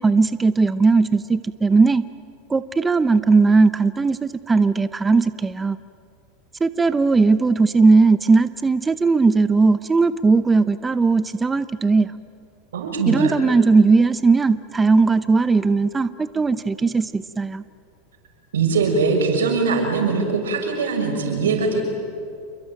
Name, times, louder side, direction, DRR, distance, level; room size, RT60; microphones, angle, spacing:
voice 1, 0.0-2.0 2.5-5.8 6.6-12.1 13.1-17.6, right 4 dB, 15° right, 14 dB, 0.7 m, -18 dB
voice 2, 12.7-13.3 18.5-21.8, right 4 dB, 90° right, 3 dB, 6.3 m, -21 dB
28.0 x 23.0 x 9.1 m, 2.4 s
hypercardioid pair, 110°, 0 cm